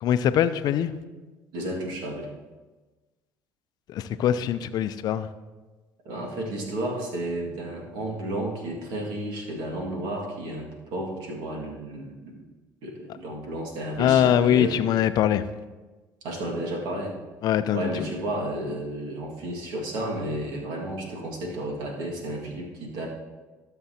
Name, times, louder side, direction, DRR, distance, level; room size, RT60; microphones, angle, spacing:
voice 1, 0.0-0.9 3.9-5.3 14.0-15.4 17.4-17.9, left 10 dB, 60° left, 12 dB, 0.5 m, -22 dB
voice 2, 1.5-2.3 6.1-12.4 12.8-14.8 16.2-17.1 17.7-23.1, right 1 dB, 70° right, -1 dB, 2.0 m, -32 dB
13.0 x 6.9 x 2.8 m, 1.2 s
supercardioid pair, 85°, 8 cm